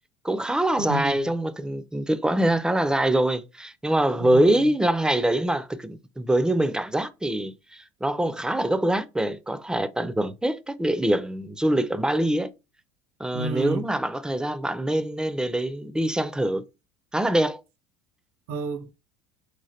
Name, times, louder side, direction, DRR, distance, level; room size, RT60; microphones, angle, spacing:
voice 1, 0.2-12.5 13.2-16.6 17.1-17.6, right 1 dB, 5° right, 0.4 m, -24 dB
voice 2, 0.8-1.3 4.2-4.5 13.3-13.8 18.5-18.9, right 2 dB, 75° right, 0.6 m, -30 dB
3.1 x 2.1 x 2.8 m
hypercardioid pair, 80°, 12 cm